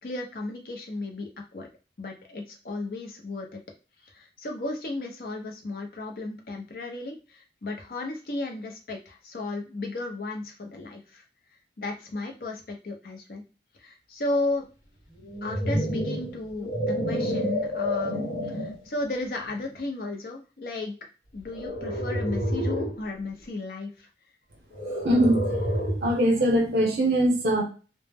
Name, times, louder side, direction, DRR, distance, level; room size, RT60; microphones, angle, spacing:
voice 1, 0.0-1.7 2.0-3.6 4.1-11.2 11.8-13.4 13.8-14.7 15.4-20.9 21.3-24.1, left 2 dB, 55° left, 2 dB, 0.5 m, -34 dB
sound 1, 15.2-18.8 19.5-19.7 21.5-23.0 24.7-26.2, equal, 70° left, 0.9 m, -29 dB
voice 2, 25.0-25.6 26.0-27.6, right 1 dB, 60° right, 1 dB, 0.6 m, -22 dB
2.1 x 2.0 x 3.3 m, 0.34 s
head